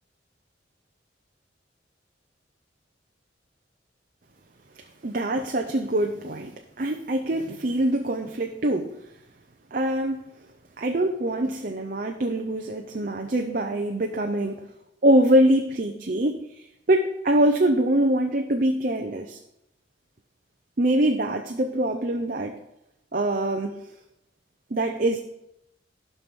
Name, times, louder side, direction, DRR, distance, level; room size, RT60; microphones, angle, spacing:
voice 1, 5.0-9.0 9.7-10.2 10.8-14.7 15.0-19.4 20.8-22.6 23.1-23.8 24.7-25.2, right 1 dB, 45° right, 4 dB, 0.7 m, -24 dB
12.5 x 5.6 x 6.2 m, 0.84 s
head